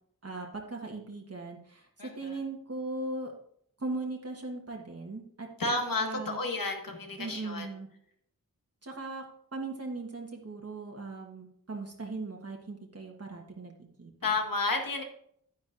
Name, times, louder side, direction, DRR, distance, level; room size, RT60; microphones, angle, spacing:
voice 1, 0.2-3.3 3.8-6.4 7.2-7.9 8.8-9.2 9.5-14.1, right 3 dB, 45° right, 0 dB, 1.3 m, -39 dB
voice 2, 2.0-2.4 5.6-7.7 14.2-15.0, left 3 dB, 70° left, 3 dB, 1.7 m, -31 dB
10.5 x 9.9 x 2.6 m, 0.68 s
wide cardioid pair, 95°, 36 cm